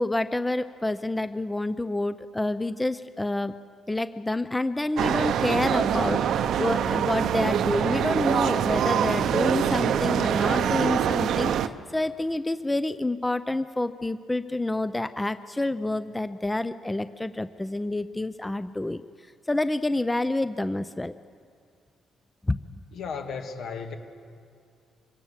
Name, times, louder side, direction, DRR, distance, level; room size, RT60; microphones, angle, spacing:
voice 1, 0.0-3.5 3.9-19.0 19.5-21.1 22.4-22.6, left 2 dB, 10° left, 13 dB, 0.5 m, -28 dB
sound 1, 5.0-11.7, right 9 dB, 75° right, 0.7 m, -24 dB
voice 2, 22.9-24.0, left 5 dB, 70° left, 5 dB, 2.0 m, -34 dB
24.5 x 18.0 x 7.4 m, 2.4 s
cardioid pair, 90°, 0 cm